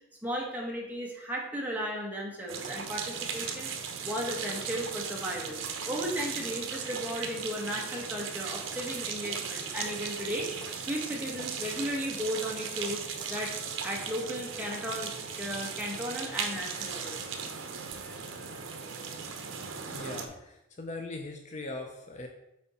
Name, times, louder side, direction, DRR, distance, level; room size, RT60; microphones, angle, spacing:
voice 1, 0.2-3.7 4.0-10.5 10.8-13.0 13.3-15.1 15.4-17.3, equal, 10° right, -2 dB, 1.2 m, -35 dB
sound 1, 2.5-20.3, right 6 dB, 75° right, 0.8 m, -37 dB
Wind instrument woodwind instrument, 11.2-19.8, equal, 15° left, 1.9 m, -55 dB
voice 2, 19.9-22.3, left 2 dB, 35° left, 4 dB, 0.6 m, -40 dB
7.6 x 4.4 x 4.2 m, 0.87 s
head